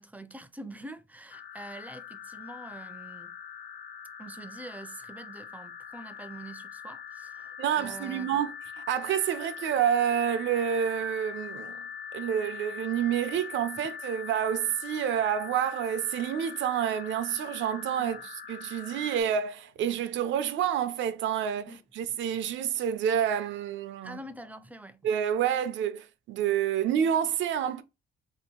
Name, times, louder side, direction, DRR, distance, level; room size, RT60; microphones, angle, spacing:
voice 1, 0.0-3.3 4.2-8.4 18.0-18.3 21.7-21.8 24.0-25.1, right 1 dB, 10° right, 0.4 m, -45 dB
sound 1, 1.3-19.2, left 7 dB, 60° left, 0.6 m, -42 dB
voice 2, 7.6-11.8 12.1-18.2 18.5-24.2 25.0-27.8, right 9 dB, 75° right, 0.4 m, -28 dB
2.8 x 2.4 x 3.6 m
cardioid pair, 90°, 20 cm